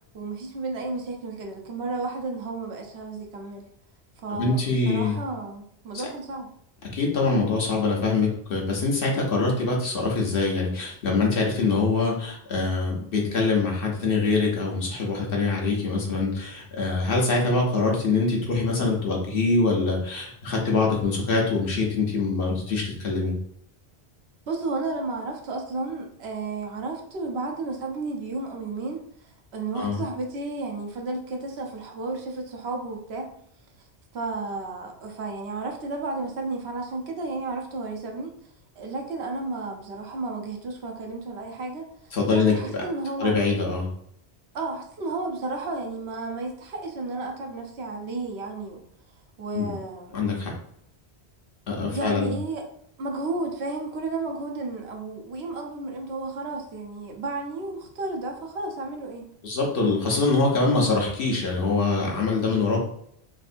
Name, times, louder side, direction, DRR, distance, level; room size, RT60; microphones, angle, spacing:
voice 1, 0.1-3.7 4.2-6.5 24.5-29.0 29.5-33.3 34.1-38.3 38.8-41.8 42.3-43.4 44.5-48.8 49.4-50.1 51.9-52.7 53.0-59.2, right 3 dB, 70° right, 2 dB, 0.9 m, -32 dB
voice 2, 4.3-5.2 6.8-23.3 29.7-30.0 42.1-42.8 43.2-43.9 49.5-49.7 50.1-50.5 51.7-52.3 59.4-62.8, left 3 dB, 60° left, -1 dB, 1.0 m, -24 dB
3.6 x 2.5 x 2.5 m, 0.69 s
omnidirectional pair, 1.1 m